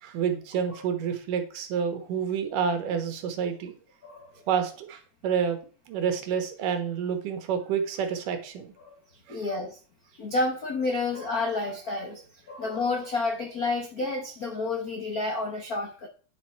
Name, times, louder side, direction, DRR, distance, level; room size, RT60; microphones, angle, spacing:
voice 1, 0.0-3.7 4.5-5.6 5.9-8.7 9.3-9.4, right 7 dB, 85° right, 7 dB, 3.0 m, -29 dB
voice 2, 4.0-4.4 8.8-9.0 9.3-9.8 10.1-16.1, left 3 dB, 75° left, 3 dB, 0.8 m, -30 dB
9.7 x 5.9 x 4.5 m, 0.38 s
omnidirectional pair, 3.6 m